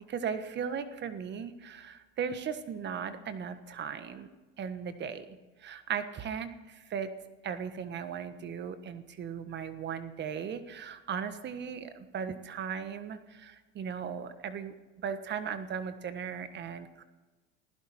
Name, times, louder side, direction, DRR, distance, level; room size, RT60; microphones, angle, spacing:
voice 1, 0.1-4.3 4.6-7.1 7.4-17.0, right 7 dB, 35° right, 10 dB, 1.4 m, -37 dB
20.5 x 15.5 x 4.3 m, 1.2 s
supercardioid pair, 115°, 32 cm